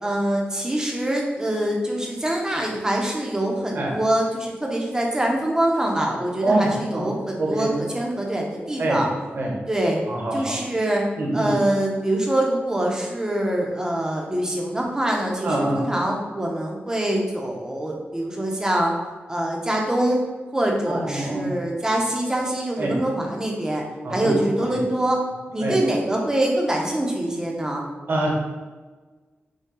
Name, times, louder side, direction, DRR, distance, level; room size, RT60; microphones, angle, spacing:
voice 1, 0.0-9.1 9.7-10.0 10.3-11.1 11.3-18.9 19.3-20.2 20.5-23.8 24.1-25.2 25.5-27.8, right 1 dB, 15° right, -1 dB, 0.8 m, -24 dB
voice 2, 6.4-7.1 7.4-7.7 8.8-9.0 9.3-9.6 10.1-10.5 11.2-11.6 15.4-15.8 20.9-21.6 22.8-23.0 24.0-24.8 25.6-25.7 28.1-28.3, right 1 dB, 55° right, -2 dB, 1.0 m, -25 dB
5.4 x 2.3 x 3.7 m, 1.3 s
wide cardioid pair, 130°, 4 cm